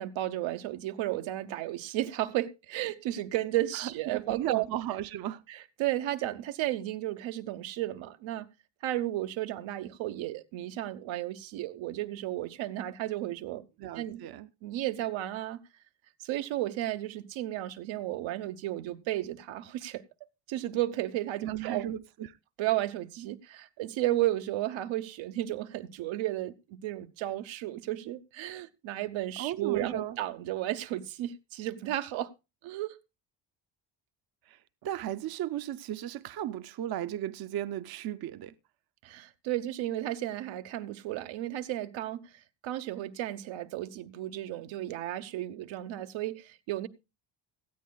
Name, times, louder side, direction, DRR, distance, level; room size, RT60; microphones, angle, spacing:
voice 1, 0.0-4.7 5.5-8.5 8.8-13.6 14.0-14.2 14.6-15.6 16.2-20.0 20.5-21.9 22.6-32.3 32.6-33.0 39.0-42.2 42.6-46.9, right 14 dB, 90° right, 0.9 m, -33 dB
voice 2, 3.7-5.4 13.8-14.5 21.4-22.4 29.4-30.2 34.5-38.5, right 12 dB, 55° right, 0.6 m, -35 dB
18.0 x 13.0 x 2.3 m
cardioid pair, 110°, 45 cm